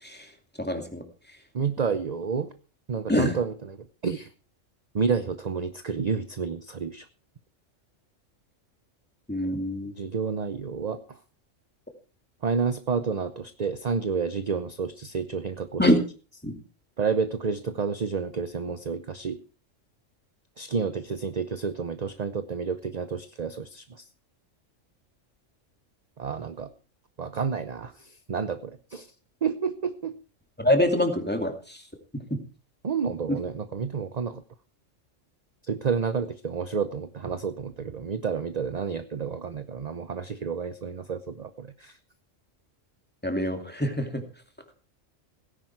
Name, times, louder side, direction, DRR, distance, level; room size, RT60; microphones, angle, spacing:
voice 1, 0.6-1.0 3.1-3.4 9.3-9.9 15.8-16.0 16.4-16.5 30.6-31.8 32.1-32.4 33.3-33.4 43.2-44.2, left 1 dB, 10° left, 4 dB, 2.5 m, -25 dB
voice 2, 1.5-2.5 2.9-3.5 4.0-4.3 4.9-7.0 10.0-11.0 12.4-15.8 17.0-19.4 20.6-24.0 26.2-26.7 27.2-29.1 29.4-30.1 32.8-34.4 35.7-41.9, right 5 dB, 40° right, 11 dB, 0.8 m, -30 dB
17.5 x 10.5 x 4.6 m, 0.37 s
omnidirectional pair, 1.3 m